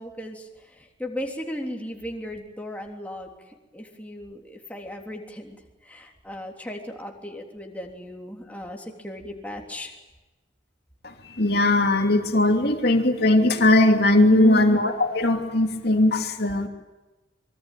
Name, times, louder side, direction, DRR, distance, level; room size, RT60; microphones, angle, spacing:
voice 1, 0.0-5.5 5.8-9.9 14.3-14.8, equal, 10° left, 1 dB, 3.4 m, -35 dB
voice 2, 11.0-16.7, left 2 dB, 55° left, 3 dB, 2.9 m, -19 dB
25.0 x 23.5 x 9.1 m, 1.1 s
head